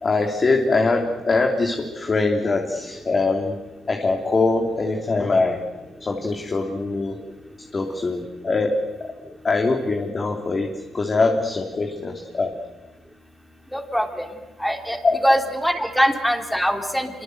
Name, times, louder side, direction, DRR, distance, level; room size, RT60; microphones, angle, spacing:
voice 1, 0.0-3.5 3.9-5.6 6.0-7.2 7.7-8.7 9.4-10.7 10.9-12.5 15.0-15.2, left 3 dB, 35° left, 3 dB, 2.9 m, -22 dB
voice 2, 13.7-14.0 14.6-15.0 15.2-17.1, equal, ahead, 4 dB, 3.4 m, -22 dB
26.5 x 24.0 x 7.9 m, 1.1 s
cardioid pair, 90°, 0 cm